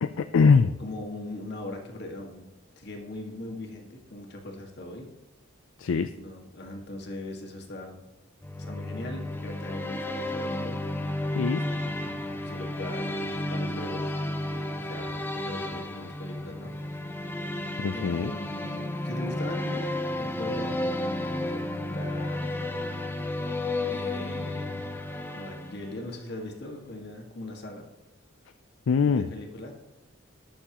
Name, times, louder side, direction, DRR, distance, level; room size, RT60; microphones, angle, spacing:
voice 1, 0.0-0.7 5.8-6.1 11.3-11.6 17.8-18.3 28.9-29.3, left 5 dB, 70° left, 10 dB, 0.4 m, -22 dB
voice 2, 0.8-2.5 2.8-5.1 6.2-8.0 8.6-10.8 11.6-13.2 13.5-14.1 14.4-16.7 17.5-17.6 17.9-19.9 20.2-22.5 23.9-24.9 25.3-27.9 29.1-29.7, left 1 dB, 50° left, 1 dB, 1.8 m, -40 dB
sound 1, 8.4-26.1, left 1 dB, 10° left, 0.6 m, -32 dB
19.0 x 6.9 x 2.9 m, 0.98 s
head